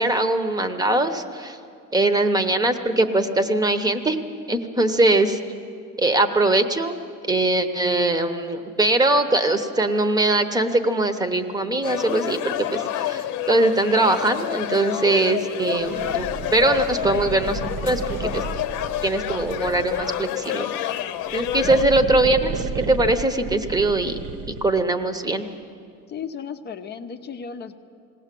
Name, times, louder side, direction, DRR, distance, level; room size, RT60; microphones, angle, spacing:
voice 1, 0.0-1.6 1.9-4.2 4.5-5.4 6.0-7.0 7.3-18.4 19.0-20.9 21.3-24.2 24.5-25.5, right 2 dB, 10° right, 9 dB, 0.9 m, -21 dB
sound 1, 11.8-21.8, left 12 dB, 75° left, 0.9 m, -29 dB
sound 2, 15.8-20.3 21.2-24.9, right 4 dB, 55° right, 1.1 m, -33 dB
voice 2, 26.1-27.8, left 6 dB, 35° left, 7 dB, 0.7 m, -34 dB
20.5 x 17.5 x 7.6 m, 2.4 s
cardioid pair, 145°, 31 cm